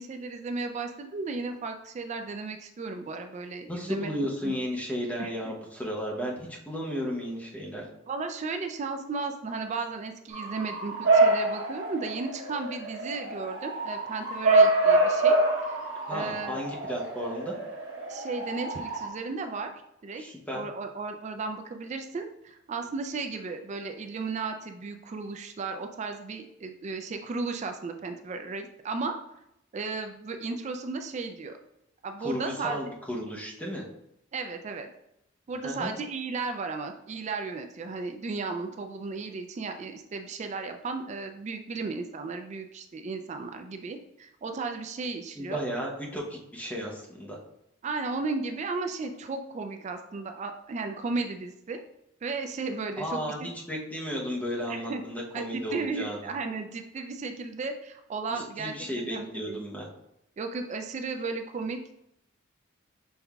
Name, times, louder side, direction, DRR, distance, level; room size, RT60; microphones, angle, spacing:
voice 1, 0.0-4.1 4.4-4.5 5.2-5.3 8.1-15.8 16.1-16.6 18.1-19.7 20.0-20.2 20.5-29.2 29.7-31.6 32.0-32.8 34.3-34.9 35.5-45.6 47.8-51.8 52.2-53.5 54.7-55.0 55.3-59.6 60.4-61.9, right 4 dB, 35° right, 6 dB, 0.3 m, -35 dB
voice 2, 3.7-7.8 16.1-17.6 20.2-20.7 32.2-33.8 35.6-35.9 45.3-47.4 53.0-56.2 58.3-59.9, equal, 10° left, -3 dB, 0.8 m, -34 dB
Bark / Motor vehicle (road) / Siren, 10.3-19.1, right 2 dB, 65° right, 1.3 m, -26 dB
5.5 x 3.4 x 2.3 m, 0.79 s
head